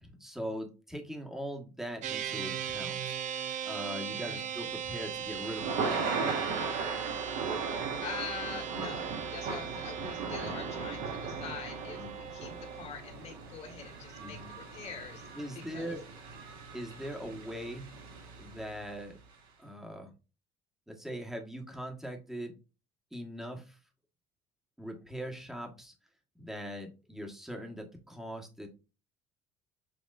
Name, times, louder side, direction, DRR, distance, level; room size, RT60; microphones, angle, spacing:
voice 1, 0.0-3.2 3.6-6.0 10.4-10.5 12.0-12.1 14.2-14.5 15.4-16.0 16.7-17.9 18.4-19.2 19.6-20.1 20.9-22.5 23.1-23.8 24.8-25.9 26.3-28.7, equal, 5° right, 2 dB, 1.3 m, -41 dB
sound 1, 2.0-12.8, right 8 dB, 50° right, 0.7 m, -39 dB
voice 2, 4.1-4.5 7.4-7.5 8.0-16.0, left 6 dB, 45° left, 3 dB, 1.8 m, -44 dB
Thunder / Rain, 4.6-18.9, right 4 dB, 75° right, 2.1 m, -38 dB
7.5 x 2.9 x 2.4 m, 0.31 s
cardioid pair, 125°, 15 cm